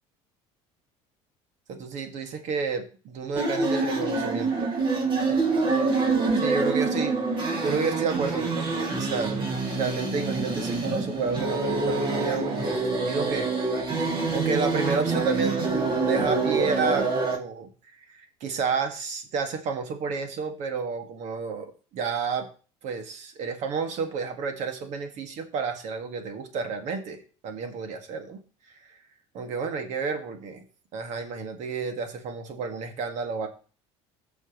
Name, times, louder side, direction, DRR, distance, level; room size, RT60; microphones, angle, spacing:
voice 1, 1.7-4.7 6.4-7.1 7.6-13.9 14.3-17.7 18.1-22.5 22.8-28.4 29.3-30.6 30.9-33.5, right 5 dB, 60° right, 6 dB, 2.0 m, -31 dB
sound 1, 3.4-17.4, right 3 dB, 35° right, 2.6 m, -26 dB
17.0 x 6.3 x 3.1 m, 0.38 s
supercardioid pair, 100°, 13 cm